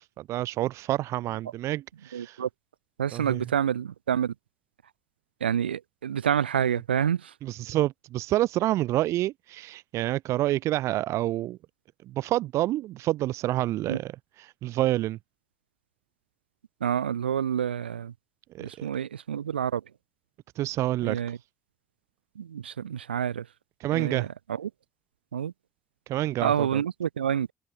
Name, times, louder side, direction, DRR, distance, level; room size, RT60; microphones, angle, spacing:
voice 1, 0.0-2.4 3.1-3.4 7.4-11.6 12.1-14.1 14.4-15.2 18.5-18.9 20.6-21.2 23.8-24.3 26.1-26.8, right 15 dB, 60° right, 2.0 m, -28 dB
voice 2, 2.1-2.5 3.0-4.3 5.4-7.3 13.9-14.0 16.8-18.1 18.6-19.8 21.0-21.4 22.4-23.5 23.9-24.7 25.3-25.5 26.4-27.5, right 9 dB, 85° right, 4.1 m, -28 dB
figure-of-eight pair, 45°, 5 cm